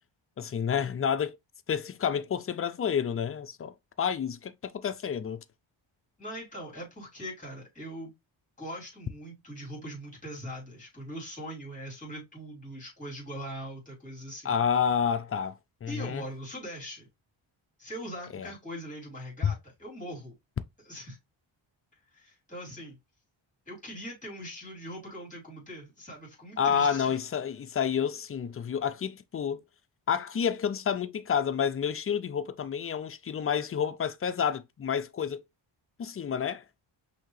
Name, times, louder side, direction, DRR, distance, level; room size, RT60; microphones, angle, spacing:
voice 1, 0.4-1.4 1.7-5.4 14.4-16.2 18.3-18.5 19.4-19.5 26.6-29.6 30.1-35.4 36.0-36.6, left 7 dB, 30° left, 0.3 m, -29 dB
voice 2, 6.2-8.1 8.6-14.5 15.9-17.1 17.8-20.3 20.8-21.2 22.1-23.0 23.7-27.2, equal, 15° left, 3.2 m, -41 dB
5.7 x 2.7 x 3.1 m
wide cardioid pair, 115°, 48 cm